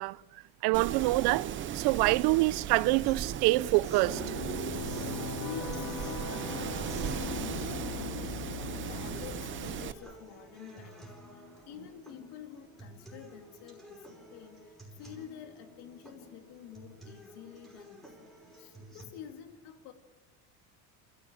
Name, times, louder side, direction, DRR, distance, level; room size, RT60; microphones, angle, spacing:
voice 1, 0.0-4.2, right 20 dB, 75° right, 0.7 m, -26 dB
Wind, 0.7-9.9, right 10 dB, 30° right, 0.7 m, -37 dB
sound 1, 3.0-19.0, equal, ahead, 5.5 m, -52 dB
sound 2, 4.0-9.9, left 6 dB, 40° left, 2.5 m, -39 dB
voice 2, 4.9-19.9, left 9 dB, 70° left, 2.6 m, -48 dB
28.5 x 15.5 x 9.0 m
cardioid pair, 165°, 40 cm